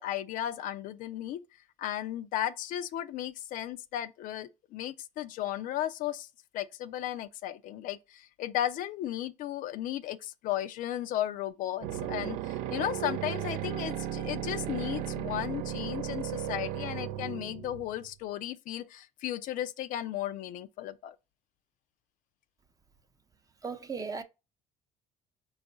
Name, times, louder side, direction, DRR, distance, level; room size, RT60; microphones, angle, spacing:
voice 1, 0.0-1.4 1.8-6.3 6.5-21.2, left 12 dB, 65° left, 0.4 m, -35 dB
sound 1, 11.8-18.1, right 11 dB, 80° right, 0.4 m, -35 dB
voice 2, 23.6-24.2, right 5 dB, 25° right, 0.7 m, -36 dB
5.2 x 2.4 x 3.8 m
supercardioid pair, 85°, 15 cm